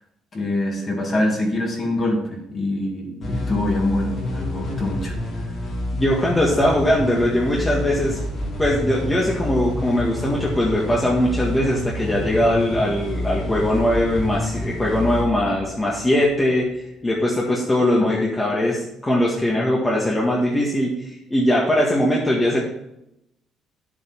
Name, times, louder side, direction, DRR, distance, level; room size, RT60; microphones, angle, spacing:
voice 1, 0.3-5.1 18.0-18.1, left 1 dB, 30° left, 0 dB, 2.5 m, -24 dB
sound 1, 3.2-16.5, left 1 dB, 50° left, 3.9 m, -28 dB
voice 2, 5.9-8.2 8.6-16.7 17.0-22.6, left 1 dB, 15° left, -4 dB, 1.7 m, -20 dB
10.5 x 7.7 x 4.6 m, 0.84 s
cardioid pair, 145°, 0 cm